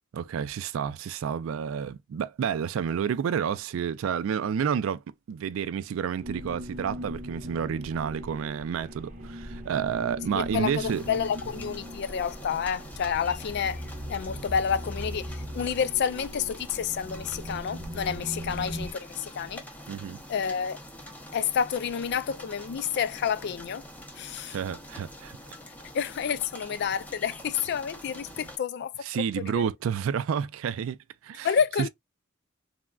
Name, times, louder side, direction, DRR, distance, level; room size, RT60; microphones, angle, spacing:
voice 1, 0.1-5.0 5.3-11.0 19.9-20.2 24.4-25.4 29.1-31.0 31.2-31.5, right 7 dB, 80° right, 0.3 m, -30 dB
sound 1, 6.2-18.9, equal, 40° right, 0.8 m, -39 dB
voice 2, 10.3-13.8 14.1-19.6 20.3-20.8 21.3-23.8 24.1-24.6 25.9-28.9 29.4-29.6 31.4-31.9, left 7 dB, 55° left, 0.3 m, -29 dB
sound 2, 10.9-28.6, left 1 dB, 10° left, 0.6 m, -45 dB
3.5 x 2.1 x 2.2 m
head